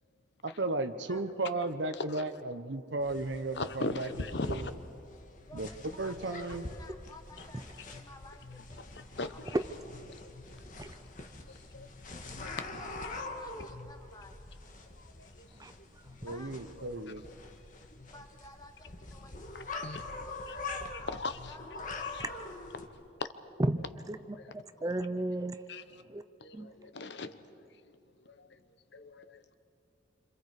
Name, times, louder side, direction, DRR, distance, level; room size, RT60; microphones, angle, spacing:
voice 1, 0.4-4.1 4.5-4.7 5.5-5.7 6.0-6.6 16.2-17.2, right 2 dB, 70° right, 1.0 m, -34 dB
sound 1, 3.0-22.9, left 2 dB, 45° left, 1.6 m, -44 dB
voice 2, 3.5-4.7 9.2-9.6 11.7-11.9 12.4-12.5 15.0-15.5 19.8-20.0 20.5-20.6 21.1-21.4 22.0-22.3 23.2-23.3 24.3-24.5 25.7-25.8 26.4-27.4 28.2-28.6 28.9-29.6, left 3 dB, 65° left, 1.0 m, -39 dB
voice 3, 5.4-9.4 12.3-14.4 16.3-16.5 18.1-22.4, left 2 dB, 20° left, 1.4 m, -54 dB
voice 4, 23.6-24.4 24.8-25.6 26.1-26.2 26.5-26.7, right 1 dB, 20° right, 0.5 m, -32 dB
28.0 x 26.5 x 4.9 m
head